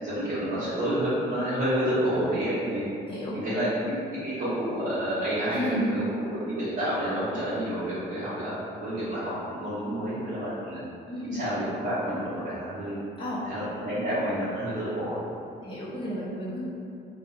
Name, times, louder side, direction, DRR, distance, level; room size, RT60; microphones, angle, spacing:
voice 1, 0.0-2.8 3.3-10.8 11.2-13.0 13.5-15.2, equal, 60° right, -14 dB, 0.9 m, -29 dB
voice 2, 3.1-3.4 5.5-6.0 11.1-11.4 13.2-13.4 15.6-16.7, equal, 25° left, -10 dB, 0.8 m, -32 dB
2.4 x 2.2 x 2.9 m, 2.6 s
cardioid pair, 90°, 20 cm